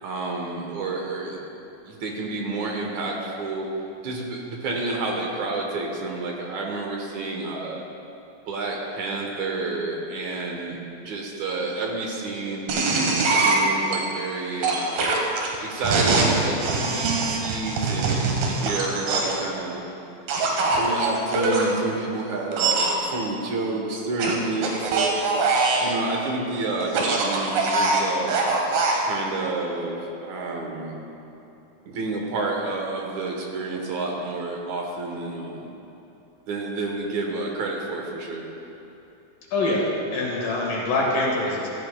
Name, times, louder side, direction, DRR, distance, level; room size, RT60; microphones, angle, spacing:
voice 1, 0.0-1.4 1.9-3.7 4.0-7.8 8.5-10.8 11.0-12.8 13.3-15.3 15.6-19.8 20.8-25.2 25.8-28.3 29.0-30.9 31.9-35.7 36.5-38.5, right 3 dB, 65° right, 0 dB, 2.3 m, -29 dB
sound 1, 12.7-14.0 14.6-19.4 20.3-21.7 22.5-22.9 24.2-25.9 26.8-29.0, right 3 dB, 90° right, 3.2 m, -23 dB
voice 2, 39.5-41.7, left 2 dB, 70° left, -3 dB, 3.3 m, -24 dB
15.0 x 14.0 x 2.3 m, 3.0 s
omnidirectional pair, 4.1 m